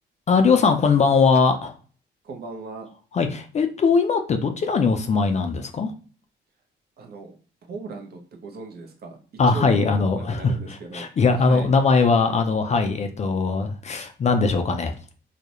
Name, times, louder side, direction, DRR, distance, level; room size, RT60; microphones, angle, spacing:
voice 1, 0.3-1.7 3.1-5.9 9.4-10.5 10.9-14.9, left 4 dB, 35° left, 6 dB, 0.4 m, -20 dB
voice 2, 2.2-2.9 7.0-7.3 7.7-9.2 9.5-11.1 11.3-11.7, right 3 dB, 55° right, 3 dB, 0.6 m, -37 dB
2.3 x 2.0 x 2.8 m, 0.39 s
cardioid pair, 90°, 20 cm